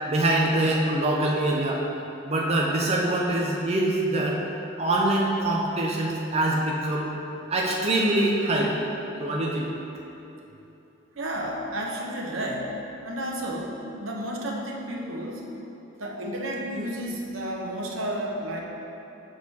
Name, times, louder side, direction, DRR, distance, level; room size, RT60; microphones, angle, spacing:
voice 1, 0.1-1.8 2.2-4.4 4.8-7.1 7.5-8.8 9.2-9.7, right 1 dB, 30° right, -2 dB, 0.6 m, -24 dB
voice 2, 11.1-12.7 13.0-15.5 16.0-18.6, right 1 dB, 80° right, -1 dB, 1.0 m, -32 dB
6.6 x 6.2 x 4.2 m, 3.0 s
head